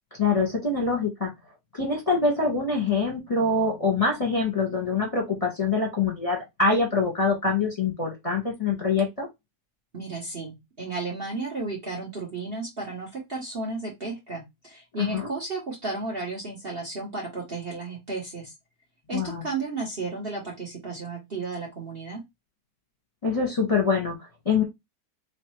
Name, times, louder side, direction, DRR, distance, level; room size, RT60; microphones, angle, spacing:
voice 1, 0.2-1.3 1.7-9.3 15.0-15.3 19.1-19.4 23.2-24.6, left 4 dB, 20° left, -2 dB, 1.3 m, -25 dB
voice 2, 9.9-18.5 19.1-22.2, right 3 dB, 40° right, 0 dB, 1.1 m, -33 dB
3.6 x 3.2 x 3.0 m, 0.19 s
omnidirectional pair, 1.9 m